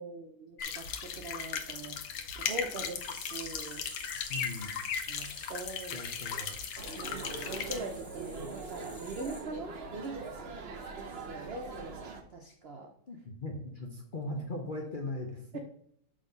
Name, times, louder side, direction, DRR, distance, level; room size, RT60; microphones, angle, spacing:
voice 1, 0.0-2.0 2.4-3.9 5.1-6.0 6.3-6.4 6.9-10.2 10.9-12.9 15.5-15.6, right 2 dB, 85° right, 4 dB, 0.5 m, -42 dB
sound 1, 0.6-7.8, left 7 dB, 75° left, 1.4 m, -37 dB
sound 2, 3.0-9.4, left 1 dB, ahead, 1.9 m, -51 dB
voice 2, 4.3-4.8 5.9-6.6 13.1-15.6, left 2 dB, 50° left, 1 dB, 0.6 m, -39 dB
sound 3, 6.8-12.2, right 4 dB, 50° right, 0.8 m, -42 dB
6.5 x 3.9 x 5.2 m, 0.69 s
omnidirectional pair, 2.0 m